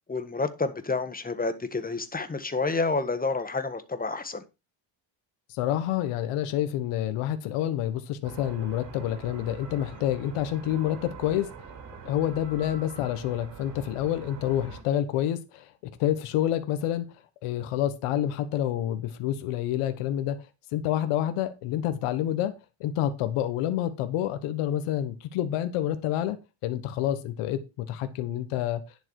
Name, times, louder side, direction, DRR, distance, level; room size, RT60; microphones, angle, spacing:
voice 1, 0.1-4.4, left 3 dB, 15° left, 1.5 m, -29 dB
voice 2, 5.5-11.5 12.0-15.7 16.0-17.0 17.4-20.4 20.7-22.5 22.8-26.4 26.6-28.8, left 11 dB, 90° left, 1.4 m, -28 dB
sound 1, 8.2-14.8, right 5 dB, 60° right, 5.1 m, -44 dB
10.5 x 7.1 x 4.7 m
cardioid pair, 100°, 50 cm